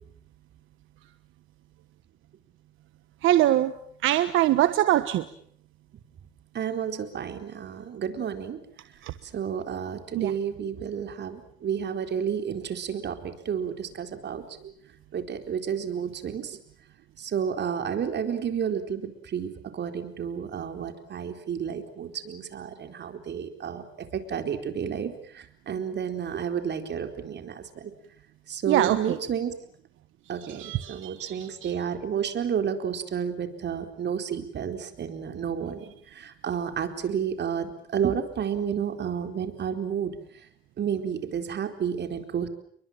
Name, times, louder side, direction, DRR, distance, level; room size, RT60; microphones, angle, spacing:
voice 1, 3.2-3.7 4.0-5.3 9.0-9.1 10.1-10.3 28.7-29.2 30.4-31.7, right 14 dB, 90° right, 11 dB, 1.3 m, -23 dB
voice 2, 6.5-8.6 9.2-14.7 15.1-16.6 17.2-27.9 28.5-29.5 30.3-35.8 36.1-40.2 40.8-42.5, right 7 dB, 60° right, 7 dB, 4.3 m, -31 dB
30.0 x 23.0 x 7.5 m, 0.64 s
cardioid pair, 90°, 20 cm